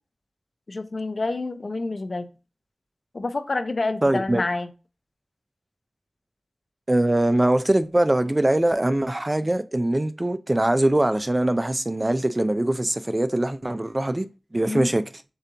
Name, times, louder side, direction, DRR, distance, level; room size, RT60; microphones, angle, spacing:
voice 1, 0.7-2.3 3.1-4.7 14.7-14.9, left 3 dB, 65° left, 0.6 m, -28 dB
voice 2, 4.0-4.4 6.9-14.3 14.5-15.0, right 1 dB, 30° right, 0.5 m, -22 dB
6.8 x 2.5 x 2.9 m
cardioid pair, 40°, 0 cm